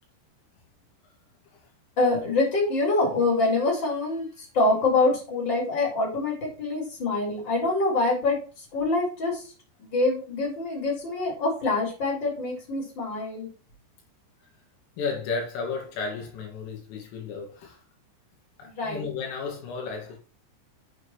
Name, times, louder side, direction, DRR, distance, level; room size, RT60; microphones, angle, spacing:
voice 1, 2.0-8.4 8.7-9.4 9.8-13.5 18.6-19.0, left 2 dB, 20° left, 6.0 m, -25 dB
voice 2, 15.0-17.8 18.6-20.2, left 4 dB, 80° left, 4.7 m, -33 dB
9.6 x 8.9 x 3.2 m
omnidirectional pair, 5.8 m